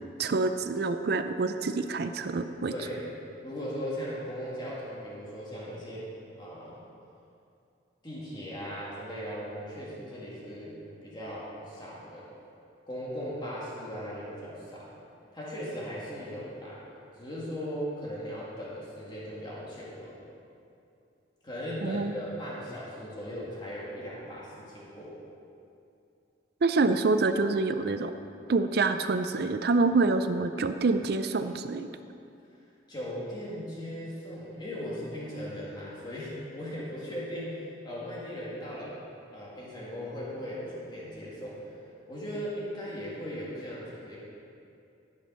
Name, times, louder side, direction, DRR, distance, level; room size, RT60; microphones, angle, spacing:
voice 1, 0.2-2.7 21.8-22.1 26.6-28.1 28.5-31.9, right 3 dB, 55° right, 9 dB, 0.4 m, -26 dB
voice 2, 2.7-6.1 6.4-6.8 8.0-12.3 12.9-14.9 15.3-16.8 17.2-20.2 21.4-25.2 32.9-39.0 39.3-41.6 42.1-44.2, equal, 25° left, -7 dB, 2.2 m, -38 dB
12.0 x 6.2 x 5.5 m, 2.6 s
head